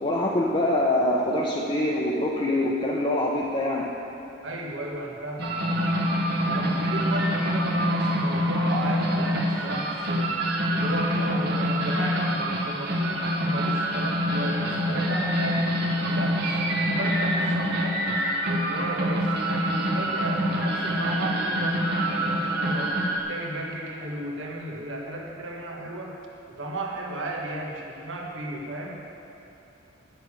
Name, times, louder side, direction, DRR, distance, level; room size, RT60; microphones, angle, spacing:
voice 1, 0.0-3.9, left 1 dB, 25° left, -4 dB, 0.8 m, -24 dB
voice 2, 4.4-6.0 6.4-10.4 10.7-15.7 16.1-18.0 18.4-23.0 23.3-26.2 26.6-29.0, right 1 dB, 75° right, -1 dB, 1.5 m, -34 dB
sound 1, 5.4-23.2, equal, 55° right, 1.3 m, -25 dB
11.0 x 6.9 x 8.3 m, 2.9 s
head